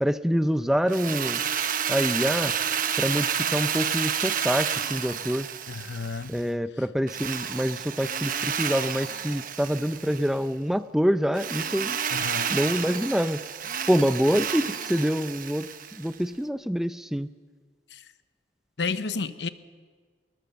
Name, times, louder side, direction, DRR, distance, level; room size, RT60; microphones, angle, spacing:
voice 1, 0.0-1.4 1.9-2.6 3.0-5.5 6.3-12.0 12.5-13.4 13.9-17.3, equal, ahead, 13 dB, 0.5 m, -26 dB
Drill, 0.9-6.4 7.1-10.4 11.3-16.1, right 8 dB, 50° right, 1.0 m, -30 dB
voice 2, 5.7-6.4 12.1-12.6 17.9-18.0 18.8-19.5, left 4 dB, 75° left, 13 dB, 0.9 m, -31 dB
20.0 x 19.5 x 7.0 m, 1.5 s
head